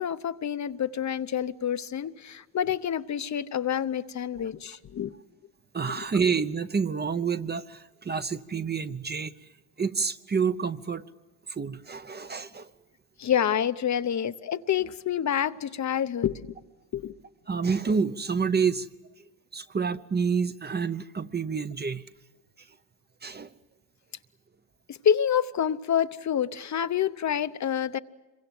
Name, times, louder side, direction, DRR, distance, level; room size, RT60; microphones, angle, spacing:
voice 1, 0.0-5.1 5.9-6.0 13.2-16.5 16.9-17.1 24.9-28.0, left 9 dB, 40° left, 0.9 m, -28 dB
voice 2, 5.7-9.3 9.8-11.0 11.5-12.7 17.5-18.9 19.5-22.0 23.2-23.5, right 5 dB, 25° right, 0.8 m, -28 dB
26.0 x 23.5 x 7.7 m
cardioid pair, 95°, 43 cm